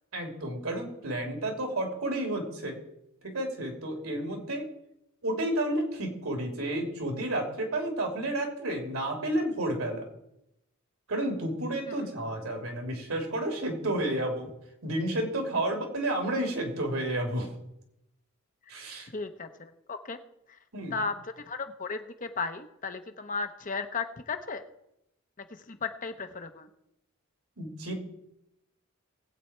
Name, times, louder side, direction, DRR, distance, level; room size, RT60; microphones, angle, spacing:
voice 1, 0.1-2.7 3.2-4.6 5.2-10.1 11.1-14.5 14.8-17.5 18.7-19.1 20.7-21.0 27.6-27.9, right 1 dB, 80° right, 3 dB, 3.1 m, -31 dB
voice 2, 19.1-20.2 20.9-24.6 25.7-26.7, left 4 dB, 40° left, 7 dB, 0.9 m, -35 dB
19.5 x 8.4 x 4.5 m, 0.84 s
head